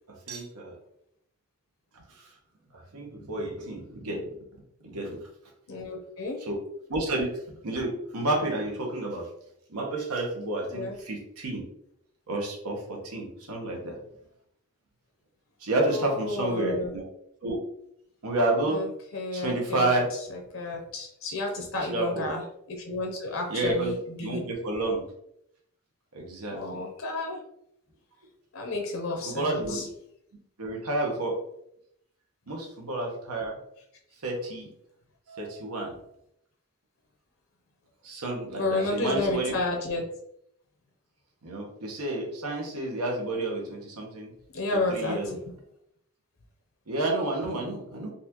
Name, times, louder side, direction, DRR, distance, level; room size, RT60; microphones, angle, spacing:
voice 1, 0.3-0.8 1.9-2.3 2.7-4.2 4.8-5.2 6.5-6.6 6.9-7.3 7.6-9.3 9.7-11.6 12.3-14.0 15.6-17.0 17.4-17.6 18.2-18.8 19.3-20.1 21.6-21.7 21.9-22.3 23.5-23.9 24.2-25.0 26.1-26.8 29.3-29.9 30.6-31.4 32.5-33.6 34.2-34.7 35.3-35.9 38.0-39.6 41.4-44.3 44.7-45.3 46.9-48.1, right 2 dB, 90° right, 0 dB, 1.0 m, -30 dB
voice 2, 5.7-6.4 10.7-11.0 15.9-16.9 18.6-18.9 19.1-20.0 20.3-24.5 26.5-27.4 28.5-29.8 38.6-40.0 44.5-45.5, left 2 dB, 70° left, 1 dB, 0.7 m, -31 dB
4.0 x 2.5 x 2.8 m, 0.74 s
head